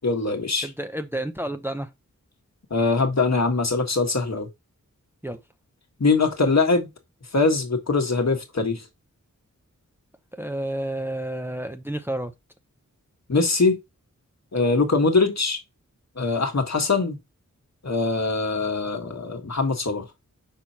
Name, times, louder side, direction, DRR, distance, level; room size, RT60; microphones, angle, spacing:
voice 1, 0.0-0.7 2.7-4.5 6.0-6.9 7.3-8.8 13.3-13.8 14.5-15.6 16.2-17.2 17.8-20.0, left 3 dB, 60° left, 1.6 m, -22 dB
voice 2, 0.6-1.9 5.2-5.4 10.4-12.3, right 1 dB, 5° right, 0.8 m, -30 dB
6.4 x 5.6 x 2.9 m
wide cardioid pair, 65°, 31 cm